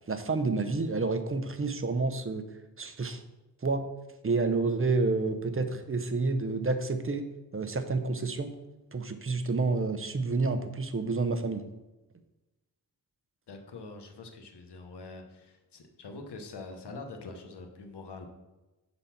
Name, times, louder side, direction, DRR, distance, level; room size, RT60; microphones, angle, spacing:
voice 1, 0.1-2.4 2.8-3.2 3.6-3.9 4.2-7.3 7.5-8.5 8.9-11.6, right 3 dB, 35° right, 8 dB, 0.8 m, -29 dB
voice 2, 13.5-18.2, left 3 dB, 90° left, 5 dB, 1.1 m, -44 dB
6.8 x 4.2 x 5.8 m, 1.1 s
cardioid pair, 60°, 39 cm